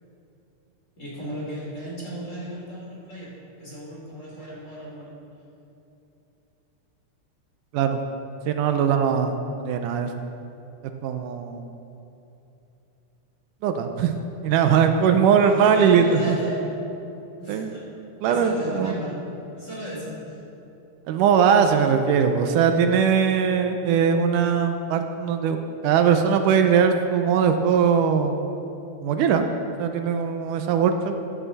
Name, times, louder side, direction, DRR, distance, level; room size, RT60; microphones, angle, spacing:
voice 1, 1.0-3.3 3.6-5.1 15.2-16.6 17.4-17.9 18.3-19.2 19.5-20.4, right 1 dB, 25° left, -6 dB, 3.3 m, -34 dB
voice 2, 8.5-10.1 11.0-11.7 13.6-16.4 17.5-17.7 18.2-18.9 21.1-25.6 25.8-28.5 29.0-29.5 29.8-31.1, right 7 dB, 80° right, 6 dB, 2.2 m, -20 dB
15.0 x 11.0 x 4.1 m, 2.8 s
omnidirectional pair, 3.7 m